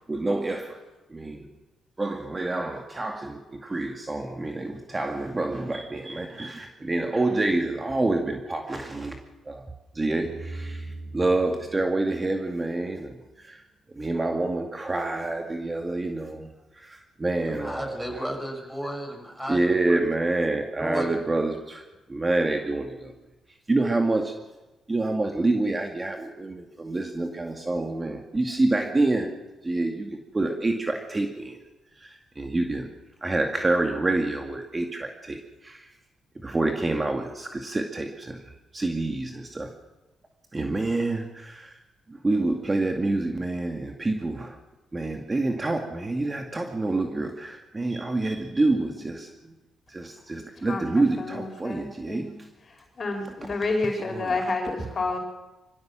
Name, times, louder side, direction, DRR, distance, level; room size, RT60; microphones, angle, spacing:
voice 1, 0.1-0.8 1.1-1.5 2.0-9.2 9.5-10.9 11.1-13.2 13.4-13.6 14.0-16.5 16.8-18.2 19.5-21.8 22.1-23.1 23.7-24.3 24.9-29.3 29.6-31.6 32.0-32.9 33.2-35.9 36.4-38.4 38.7-39.7 40.5-41.7 42.1-44.6 44.9-49.5 49.9-52.3 54.1-54.4, right 2 dB, 25° right, 4 dB, 2.2 m, -27 dB
sound 1, 10.2-13.2, right 2 dB, 70° right, 6.3 m, -40 dB
voice 2, 17.4-20.0 20.8-21.2, equal, 5° right, 3 dB, 6.7 m, -34 dB
voice 3, 50.6-52.4 53.0-55.2, left 3 dB, 50° left, 3 dB, 4.9 m, -30 dB
23.5 x 15.0 x 7.5 m, 1.1 s
supercardioid pair, 55°, 0 cm